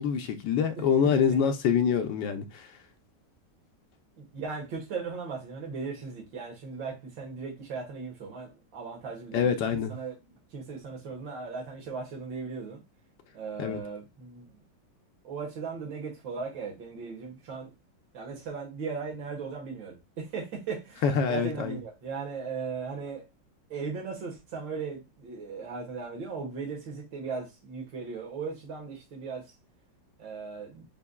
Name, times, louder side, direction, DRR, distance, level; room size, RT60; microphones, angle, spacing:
voice 1, 0.0-2.7 9.3-9.9 13.6-13.8 21.0-21.8, left 7 dB, 80° left, 1.4 m, -25 dB
voice 2, 0.8-1.4 4.2-10.1 10.5-12.8 13.3-14.5 15.2-17.7 18.1-21.0 21.3-23.2 23.7-29.4 30.2-30.8, right 5 dB, 90° right, 2.1 m, -37 dB
6.7 x 2.7 x 2.2 m
omnidirectional pair, 2.0 m